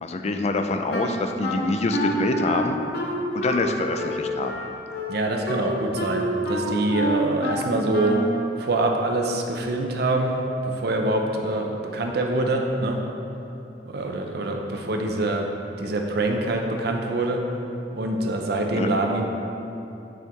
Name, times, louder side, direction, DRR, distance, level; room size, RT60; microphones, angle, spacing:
voice 1, 0.0-2.8 3.3-4.5 18.7-18.9, left 2 dB, 40° left, 6 dB, 0.4 m, -25 dB
Wind instrument woodwind instrument, 0.9-8.5, equal, 65° left, 0.9 m, -28 dB
voice 2, 5.1-8.2 8.6-13.0 13.9-15.5 15.8-17.4 17.9-19.3, right 2 dB, 65° right, 2 dB, 0.6 m, -25 dB
8.3 x 4.5 x 3.5 m, 2.8 s
head